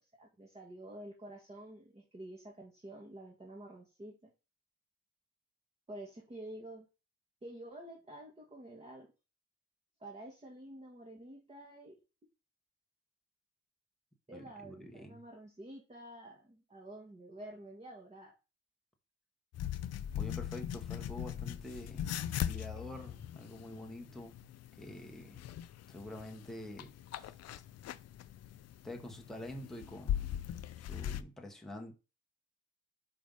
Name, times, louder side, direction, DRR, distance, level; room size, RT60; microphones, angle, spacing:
voice 1, 0.0-4.3 5.9-6.9 7.4-9.1 10.0-12.0 14.3-18.3, right 1 dB, 20° right, 1.5 m, -49 dB
voice 2, 14.3-15.2 20.1-24.4 24.8-25.4 25.9-27.3 28.8-30.4 30.8-31.9, left 1 dB, ahead, 1.1 m, -47 dB
sound 1, 19.5-31.2, left 10 dB, 55° left, 0.5 m, -40 dB
5.1 x 3.4 x 5.3 m
cardioid pair, 90°, 30 cm